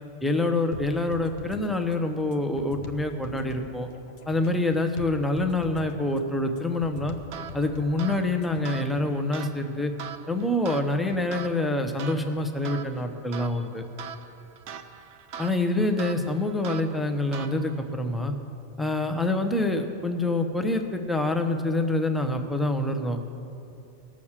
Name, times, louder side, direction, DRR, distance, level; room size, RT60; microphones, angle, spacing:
voice 1, 0.2-3.9 4.3-7.2 7.5-9.9 10.3-13.8 15.4-18.3 18.8-23.2, left 2 dB, ahead, 5 dB, 0.7 m, -26 dB
sound 1, 0.7-9.2, left 4 dB, 75° left, 1.1 m, -44 dB
sound 2, 7.3-17.9, right 7 dB, 80° right, 1.0 m, -42 dB
18.0 x 6.4 x 7.4 m, 2.8 s
omnidirectional pair, 1.2 m